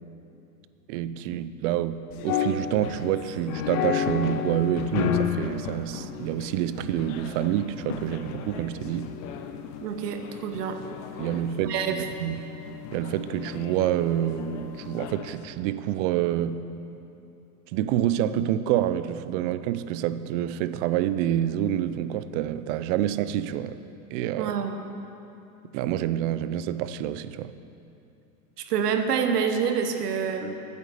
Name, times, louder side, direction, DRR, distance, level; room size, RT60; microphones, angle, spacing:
voice 1, 0.9-9.1 11.2-12.5 12.9-16.6 17.7-23.8 24.1-24.5 25.7-27.5, right 11 dB, 50° right, 13 dB, 0.6 m, -27 dB
sound 1, 2.1-15.4, left 8 dB, 55° left, 1.0 m, -33 dB
voice 2, 9.8-10.8 11.6-12.0 24.4-24.7 28.6-30.5, right 7 dB, 85° right, 7 dB, 1.2 m, -27 dB
9.5 x 8.0 x 8.2 m, 2.8 s
hypercardioid pair, 115°, 46 cm